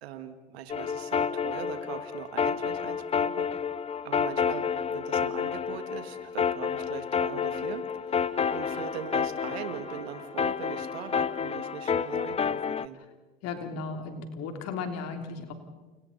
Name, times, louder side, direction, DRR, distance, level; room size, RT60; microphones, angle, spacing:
voice 1, 0.0-3.5 4.0-8.2 8.5-13.0, right 9 dB, 80° right, 8 dB, 2.0 m, -40 dB
sound 1, 0.7-12.9, left 7 dB, 20° left, 0.6 m, -30 dB
Wind instrument woodwind instrument, 8.2-11.9, right 6 dB, 20° right, 7.8 m, -52 dB
voice 2, 13.4-15.5, left 4 dB, 55° left, 5 dB, 3.2 m, -35 dB
29.5 x 29.0 x 4.2 m, 1.3 s
hypercardioid pair, 90°, 31 cm